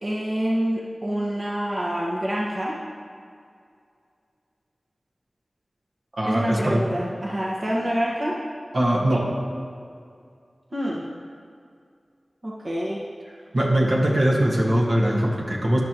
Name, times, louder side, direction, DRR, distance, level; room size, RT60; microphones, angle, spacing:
voice 1, 0.0-2.8 6.2-8.4 10.7-11.1 12.4-13.0, equal, 45° right, -5 dB, 1.6 m, -26 dB
voice 2, 6.2-6.8 8.7-9.3 13.5-15.8, right 1 dB, 60° right, -3 dB, 1.8 m, -21 dB
14.5 x 10.5 x 3.1 m, 2.3 s
wide cardioid pair, 50°, 0 cm